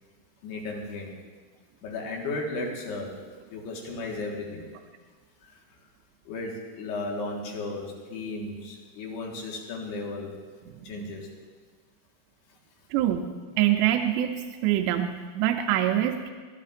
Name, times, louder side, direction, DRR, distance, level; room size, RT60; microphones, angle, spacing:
voice 1, 0.4-1.1 1.8-3.1 3.5-4.6 6.3-10.3 10.9-11.2, left 2 dB, 75° left, -1 dB, 3.6 m, -34 dB
voice 2, 12.9-13.3 13.6-14.3 14.6-16.3, right 12 dB, 85° right, 5 dB, 2.7 m, -24 dB
21.0 x 12.0 x 2.5 m, 1.5 s
omnidirectional pair, 4.9 m